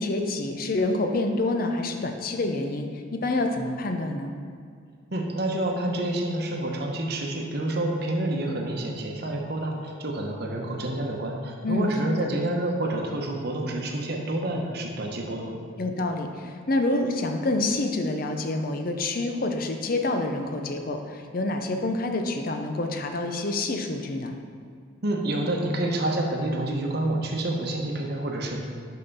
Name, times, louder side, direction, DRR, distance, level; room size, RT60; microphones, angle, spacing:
voice 1, 0.0-4.3 11.6-12.3 15.8-24.4, left 2 dB, 45° left, 5 dB, 0.6 m, -27 dB
voice 2, 5.1-15.5 25.0-28.6, right 1 dB, 50° right, 1 dB, 0.9 m, -28 dB
5.6 x 5.6 x 5.4 m, 2.3 s
head